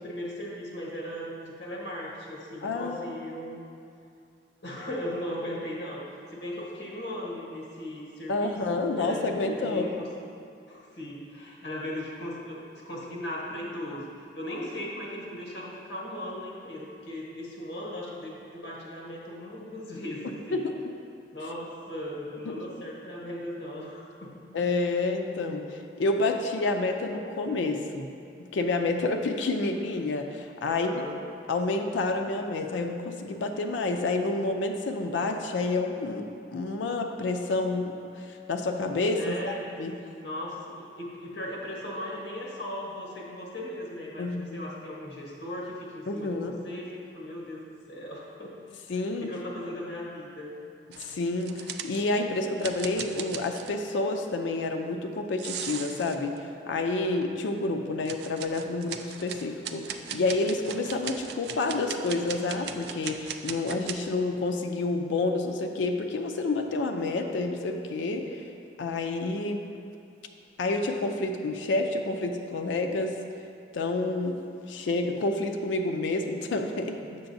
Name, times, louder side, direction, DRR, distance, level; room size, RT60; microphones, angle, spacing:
voice 1, 0.0-3.6 4.6-10.1 10.7-12.6 12.8-14.1 14.3-20.6 21.3-24.5 30.7-31.2 39.2-39.8 40.1-48.7 49.0-50.5 77.0-77.3, left 1 dB, 65° left, -2 dB, 1.1 m, -38 dB
voice 2, 2.6-3.0 8.3-9.9 20.5-20.7 22.5-22.6 24.5-28.1 28.5-31.0 31.5-36.3 36.5-39.9 44.2-44.6 46.1-46.6 48.9-49.3 51.0-68.5 68.8-69.7 70.6-73.2 73.7-77.0, left 2 dB, 85° left, 4 dB, 0.4 m, -29 dB
sound 1, 50.9-52.2 52.6-53.8 55.4-56.4 57.2-57.3 58.1-63.9, right 8 dB, 60° right, 0.3 m, -38 dB
6.9 x 6.8 x 2.6 m, 2.5 s
head